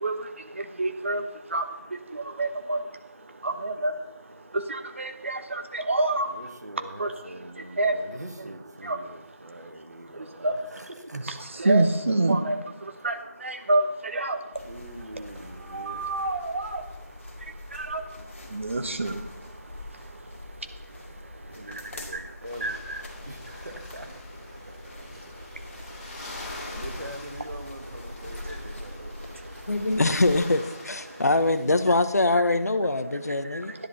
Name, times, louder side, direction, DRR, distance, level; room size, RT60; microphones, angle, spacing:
voice 1, 0.5-1.6 2.1-2.8 3.4-3.9 4.5-6.3 7.0-7.1 7.8-8.0 8.4-8.5 8.8-9.0 10.1-10.5 11.1-12.6 13.0-14.4 15.7-16.8 17.7-18.0 18.5-19.2 21.7-21.8 22.1-22.2 22.6-23.0 28.5-28.6 32.4-32.5 33.5-33.6, right 2 dB, 50° right, 7 dB, 1.1 m, -27 dB
voice 2, 6.3-11.3 14.6-16.1 21.4-22.8 23.3-24.1 26.6-29.1, right 1 dB, 90° right, 5 dB, 1.6 m, -43 dB
sound 1, 14.5-30.5, left 1 dB, 50° left, 2.4 m, -43 dB
sound 2, 22.4-32.0, left 2 dB, 30° left, 4.7 m, -45 dB
voice 3, 29.7-33.7, left 2 dB, 70° left, 11 dB, 0.9 m, -23 dB
12.5 x 10.5 x 4.1 m, 0.98 s
figure-of-eight pair, 170°, 9 cm